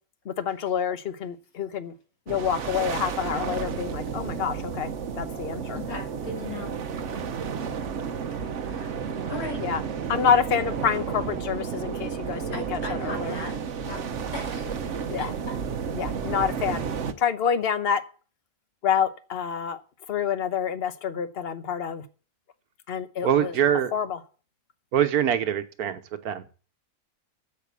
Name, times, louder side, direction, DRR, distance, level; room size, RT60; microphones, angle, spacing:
voice 1, 0.2-1.9 2.3-4.9 5.2-5.8 9.6-9.8 10.1-12.4 12.7-13.3 15.1-15.3 15.9-16.9 17.2-18.0 18.8-19.8 20.1-22.0 22.9-23.6 23.9-24.2, left 7 dB, 45° left, 12 dB, 1.1 m, -27 dB
sound 1, 2.3-17.1, right 6 dB, 55° right, 1.2 m, -32 dB
voice 2, 5.7-6.8 8.3-8.9 9.2-9.6 12.5-13.6 13.8-14.0 14.3-15.6, left 2 dB, 75° left, 2 dB, 3.3 m, -38 dB
voice 3, 23.2-23.9 24.9-26.0 26.2-26.4, right 9 dB, 85° right, 10 dB, 1.5 m, -23 dB
8.5 x 7.7 x 8.3 m, 0.39 s
omnidirectional pair, 1.5 m